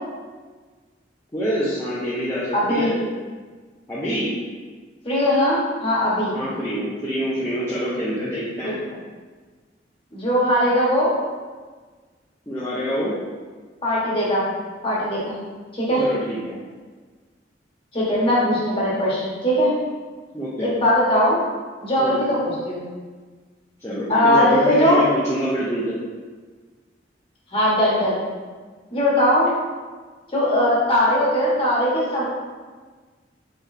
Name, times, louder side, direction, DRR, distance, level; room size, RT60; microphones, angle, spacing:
voice 1, 1.3-2.9 3.9-4.3 6.3-8.7 12.5-13.1 16.0-16.6 20.3-20.7 22.0-22.2 23.8-26.0, equal, 15° left, -9 dB, 0.6 m, -26 dB
voice 2, 2.5-3.0 5.0-6.3 8.6-8.7 10.1-11.1 13.8-14.4 14.8-15.4 15.7-16.0 17.9-19.7 20.6-21.4 21.8-22.8 24.1-25.0 27.5-28.2 28.9-29.5 30.3-32.2, left 1 dB, 30° left, -7 dB, 1.4 m, -20 dB
4.7 x 4.0 x 2.7 m, 1.4 s
head